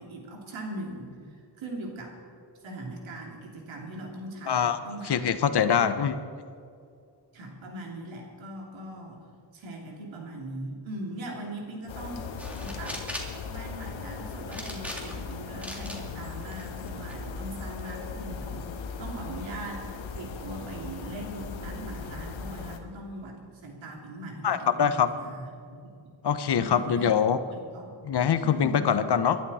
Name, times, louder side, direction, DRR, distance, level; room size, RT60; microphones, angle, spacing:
voice 1, 0.0-2.2 2.6-5.4 7.3-9.2 9.5-13.0 13.5-26.1 26.5-27.1 27.5-28.9, right 1 dB, 85° right, 0 dB, 3.1 m, -40 dB
voice 2, 4.5-4.8 5.1-6.2 24.4-25.1 26.2-27.4 28.0-29.4, left 8 dB, 60° left, 11 dB, 1.0 m, -24 dB
sound 1, 11.9-22.8, left 5 dB, 80° left, 1.3 m, -38 dB
sound 2, 12.4-13.4 14.5-15.3 15.6-16.0 16.5-17.2, equal, 5° right, 2.7 m, -39 dB
23.0 x 12.0 x 4.3 m, 2.3 s
cardioid pair, 90°, 46 cm